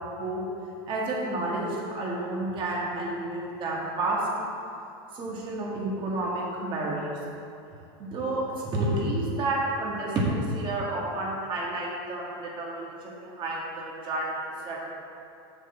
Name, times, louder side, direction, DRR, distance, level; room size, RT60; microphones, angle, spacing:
voice 1, 0.9-4.5 5.1-7.2 8.0-14.8, right 2 dB, 40° right, -4 dB, 1.7 m, -30 dB
6.3 x 6.2 x 4.5 m, 2.7 s
supercardioid pair, 135°, 13 cm